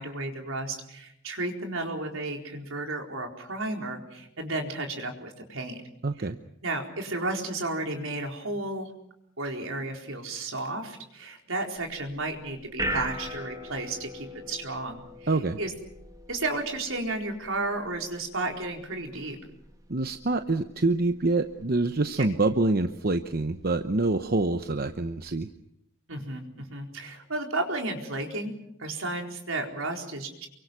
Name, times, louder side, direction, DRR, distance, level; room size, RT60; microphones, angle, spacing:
voice 1, 0.0-5.8 6.6-8.9 9.4-15.7 16.3-19.4 22.2-22.3 26.1-28.5 28.8-30.5, right 2 dB, 70° right, 2 dB, 4.3 m, -33 dB
voice 2, 6.0-6.4 15.3-15.6 19.9-25.5, right 2 dB, 45° right, 8 dB, 0.9 m, -26 dB
sound 1, 11.8-25.3, equal, 15° right, 1.7 m, -41 dB
28.5 x 24.0 x 6.1 m, 0.76 s
head